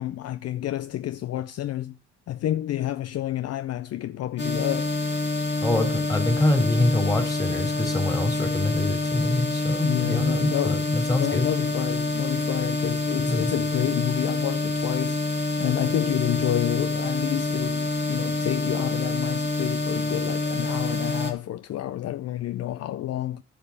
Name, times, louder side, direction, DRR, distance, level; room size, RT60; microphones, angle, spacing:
voice 1, 0.0-2.0 2.3-4.9 9.8-10.9 11.2-23.4, left 13 dB, 55° left, 0.5 m, -29 dB
sound 1, 4.4-21.3, left 2 dB, 35° left, 1.9 m, -27 dB
voice 2, 5.6-11.5 13.1-13.5, left 1 dB, 10° left, 3.2 m, -25 dB
10.5 x 5.5 x 7.0 m
cardioid pair, 90°, 30 cm